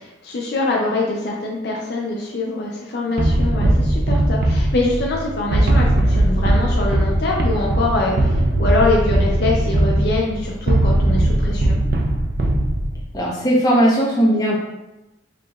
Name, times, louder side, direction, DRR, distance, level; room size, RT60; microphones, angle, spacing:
voice 1, 0.0-11.8, left 2 dB, 55° left, -2 dB, 0.5 m, -23 dB
sound 1, 3.2-13.1, right 1 dB, 50° right, 0.5 m, -19 dB
voice 2, 13.1-14.6, equal, 20° left, -5 dB, 0.8 m, -17 dB
4.8 x 2.9 x 2.3 m, 0.99 s
head